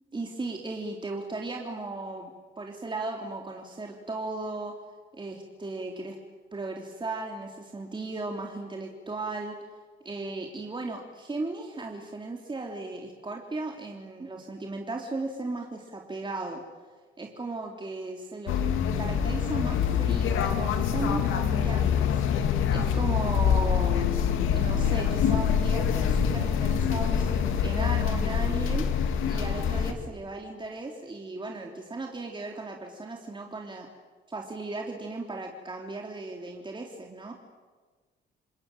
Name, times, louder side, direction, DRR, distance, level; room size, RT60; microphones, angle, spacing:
voice 1, 0.1-4.8 5.1-6.2 6.5-9.6 10.0-16.6 17.2-18.6 19.0-22.1 22.4-33.9 34.3-37.3, right 3 dB, 25° right, 1 dB, 3.3 m, -36 dB
sound 1, 18.5-29.9, left 8 dB, 85° left, 2.4 m, -25 dB
28.0 x 20.5 x 9.1 m, 1.4 s
cardioid pair, 90°, 20 cm